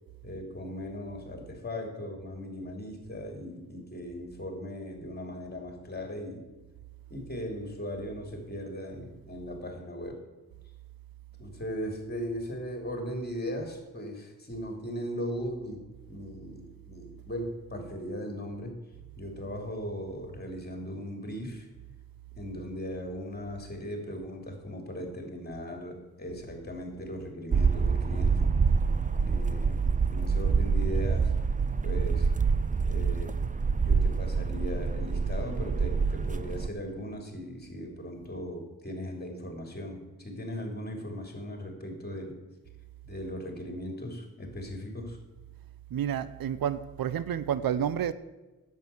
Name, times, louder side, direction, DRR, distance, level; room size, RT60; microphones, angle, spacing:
voice 1, 0.2-6.5 7.1-10.2 11.4-15.8 16.1-18.8 19.2-21.7 22.4-28.5 29.2-31.3 31.8-32.3 32.8-33.3 33.8-42.4 43.1-45.2, equal, 25° left, 3.2 m, -38 dB
sound 1, 27.5-36.7, right 5 dB, 25° right, 0.4 m, -26 dB
voice 2, 45.9-48.1, right 9 dB, 75° right, 0.6 m, -30 dB
10.5 x 8.2 x 7.0 m
cardioid pair, 85°, 35 cm